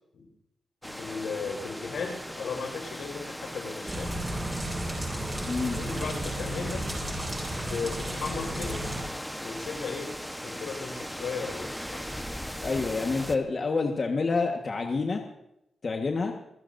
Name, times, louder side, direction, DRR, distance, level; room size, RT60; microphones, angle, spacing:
voice 1, 0.8-4.1 5.7-6.9 7.7-8.8 9.4-10.1 10.4-12.2, left 5 dB, 85° left, 1 dB, 5.2 m, -36 dB
sound 1, 0.8-13.4, equal, ahead, 1.2 m, -38 dB
sound 2, 3.9-9.0, right 1 dB, 15° right, 7.6 m, -33 dB
voice 2, 5.4-5.8 12.6-15.2 15.8-16.3, left 4 dB, 45° left, 2 dB, 1.5 m, -28 dB
28.5 x 15.5 x 2.7 m, 0.83 s
cardioid pair, 95°, 0 cm